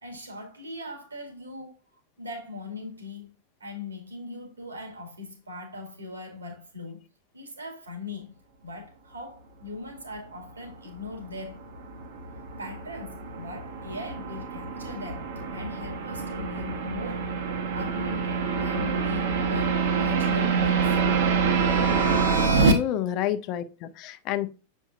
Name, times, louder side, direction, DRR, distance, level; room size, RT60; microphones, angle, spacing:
voice 1, 0.0-1.8 2.2-3.3 3.6-7.0 7.3-8.3 8.6-11.7 12.6-17.4 17.7-21.0, left 2 dB, 75° right, 2.2 m, -40 dB
sound 1, 11.2-22.7, right 5 dB, 55° right, 1.3 m, -26 dB
voice 2, 22.6-24.5, left 11 dB, 40° left, 0.6 m, -29 dB
7.2 x 5.3 x 2.5 m
figure-of-eight pair, 90°, 0 cm